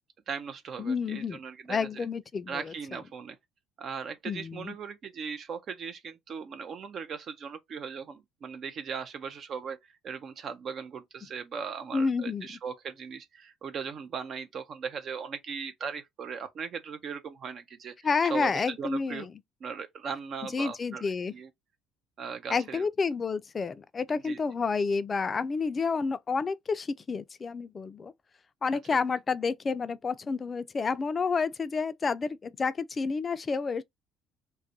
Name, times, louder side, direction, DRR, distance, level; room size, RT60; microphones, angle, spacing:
voice 1, 0.3-1.9 2.5-3.4 3.8-17.9 18.3-18.5 18.8-19.3 19.6-21.5 22.2-22.8 24.1-24.4, right 6 dB, 55° right, 0.4 m, -38 dB
voice 2, 0.8-1.4 1.7-2.7 4.3-4.7 11.9-12.5 18.0-19.3 20.4-21.3 22.5-28.1 28.6-33.8, left 5 dB, 35° left, 0.3 m, -30 dB
2.3 x 2.1 x 2.7 m
hypercardioid pair, 70°, 0 cm